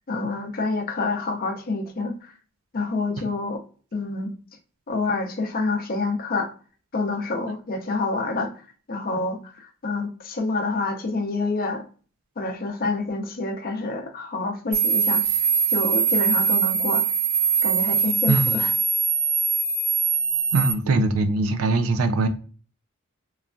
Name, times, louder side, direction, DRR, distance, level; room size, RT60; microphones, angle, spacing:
voice 1, 0.1-2.3 2.7-3.6 3.9-4.3 4.9-6.5 6.9-8.5 8.9-11.8 12.4-15.2 15.7-17.0 17.6-18.7, left 3 dB, 45° left, 0.5 m, -27 dB
sound 1, 14.7-20.7, right 5 dB, 30° right, 0.5 m, -22 dB
voice 2, 18.3-18.6 20.5-22.3, right 3 dB, 80° right, 0.4 m, -22 dB
3.1 x 2.2 x 2.4 m
head